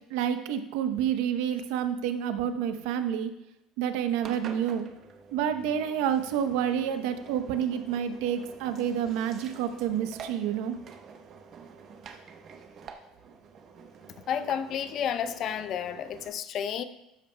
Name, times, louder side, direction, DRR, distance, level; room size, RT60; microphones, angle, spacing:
voice 1, 0.1-3.3 3.8-4.9 5.3-10.7, right 9 dB, 80° right, 0.8 m, -29 dB
Engine, 4.2-16.3, right 6 dB, 40° right, 0.8 m, -48 dB
voice 2, 14.3-16.8, left 8 dB, 45° left, 0.5 m, -31 dB
12.5 x 8.7 x 2.2 m
cardioid pair, 145°, 0 cm